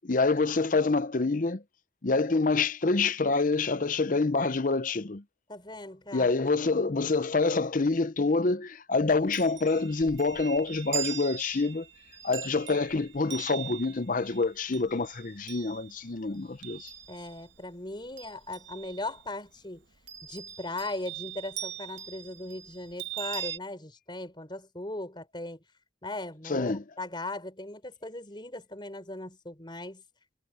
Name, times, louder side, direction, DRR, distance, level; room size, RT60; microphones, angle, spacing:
voice 1, 0.0-1.6 2.0-5.2 6.1-11.9 12.2-16.9 26.5-26.8, left 3 dB, 45° left, 0.7 m, -27 dB
voice 2, 5.5-6.3 6.7-6.8 17.1-19.8 20.3-25.6 26.0-30.0, left 2 dB, 25° left, 5.0 m, -38 dB
Chime, 9.1-17.6 17.9-19.3 20.1-23.6, right 10 dB, 85° right, 1.6 m, -41 dB
head